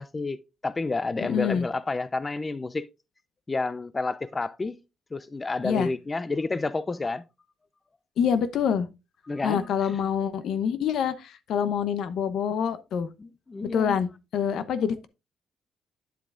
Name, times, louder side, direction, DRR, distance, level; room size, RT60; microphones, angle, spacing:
voice 1, 0.0-2.9 3.5-4.8 5.1-7.2 9.3-10.0 13.2-14.0, left 3 dB, 25° left, 0.4 m, -30 dB
voice 2, 1.2-1.7 5.6-5.9 8.2-8.9 9.4-13.1 13.7-15.1, left 7 dB, 70° left, 0.9 m, -26 dB
9.4 x 7.8 x 2.5 m
cardioid pair, 90°, 0 cm